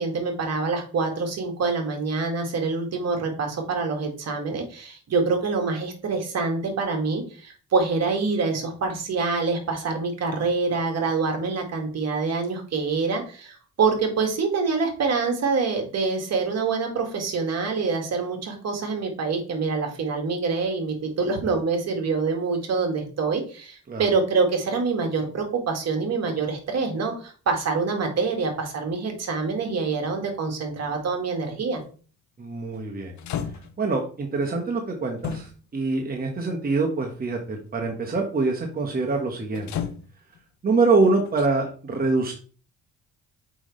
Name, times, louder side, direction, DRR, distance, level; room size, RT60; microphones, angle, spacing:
voice 1, 0.0-31.8, right 4 dB, 60° right, 3 dB, 2.0 m, -26 dB
sound 1, 31.8-32.0 32.7-32.8 33.2-33.9 35.2-35.8 36.8-36.9 39.5-40.4 41.2-41.5, left 8 dB, 70° left, 0.8 m, -33 dB
voice 2, 32.4-33.2 33.8-39.9 40.6-42.3, right 3 dB, 30° right, 1 dB, 1.3 m, -25 dB
6.1 x 5.1 x 3.2 m, 0.38 s
cardioid pair, 90°, 30 cm